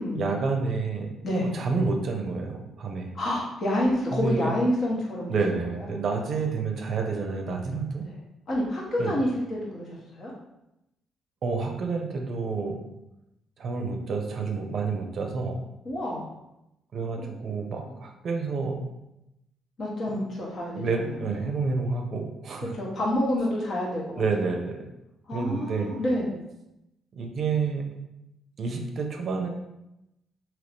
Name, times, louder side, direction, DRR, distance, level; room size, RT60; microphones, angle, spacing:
voice 1, 0.1-1.1 1.4-3.1 4.1-4.5 5.3-8.1 9.0-9.2 11.4-12.8 13.6-15.6 16.9-18.9 20.1-20.2 20.7-22.8 24.2-24.9 25.3-25.9 27.1-28.0 28.6-29.5, right 4 dB, 55° right, 3 dB, 0.5 m, -29 dB
voice 2, 3.1-5.9 8.0-8.2 8.5-10.3 15.8-16.3 17.2-17.5 17.9-18.0 19.8-21.1 22.7-24.3 25.3-26.3, left 1 dB, 55° left, -3 dB, 1.1 m, -28 dB
2.8 x 2.6 x 3.4 m, 0.89 s
cardioid pair, 90°, 0 cm